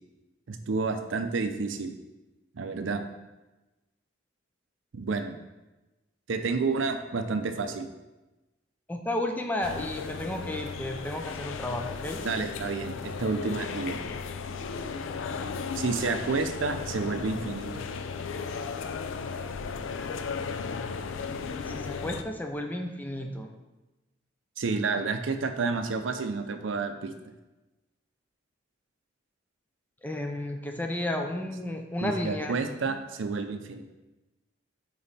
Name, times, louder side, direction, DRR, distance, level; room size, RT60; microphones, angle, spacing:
voice 1, 0.5-1.9 2.5-3.0 4.9-5.4 6.3-7.9 12.2-14.0 15.7-17.7 24.6-27.1 32.0-33.8, right 4 dB, 75° right, 8 dB, 0.5 m, -30 dB
voice 2, 8.9-12.2 21.7-23.5 30.0-32.5, left 1 dB, 10° left, 3 dB, 0.4 m, -32 dB
sound 1, 9.6-22.2, left 5 dB, 80° left, 0.4 m, -35 dB
5.3 x 4.8 x 4.1 m, 1.1 s
head